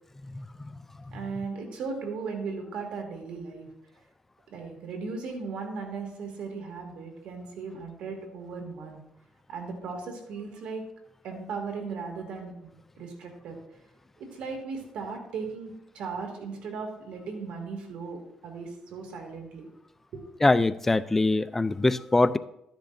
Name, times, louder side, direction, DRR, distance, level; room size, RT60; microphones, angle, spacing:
voice 1, 1.1-3.7 4.5-9.0 9.5-10.8 11.2-13.6 14.3-19.7 20.1-20.2, right 4 dB, 70° right, 2.4 m, -37 dB
voice 2, 20.4-22.4, left 2 dB, 15° left, 0.4 m, -23 dB
12.5 x 10.5 x 2.6 m
cardioid pair, 115°, 2 cm